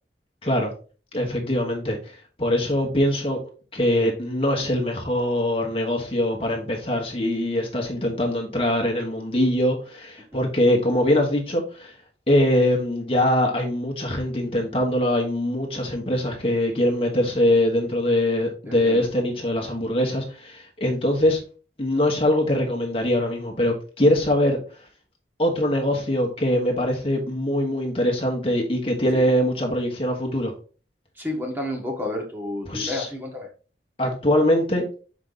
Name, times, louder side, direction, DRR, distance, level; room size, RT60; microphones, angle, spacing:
voice 1, 1.1-3.4 3.7-12.0 12.3-21.4 21.8-24.6 25.4-30.5 32.7-33.1 34.0-34.9, left 1 dB, 35° left, 1 dB, 1.3 m, -22 dB
voice 2, 18.7-19.1 29.1-29.3 31.2-33.5, left 1 dB, 10° right, 0 dB, 1.5 m, -31 dB
6.4 x 5.0 x 4.0 m, 0.37 s
head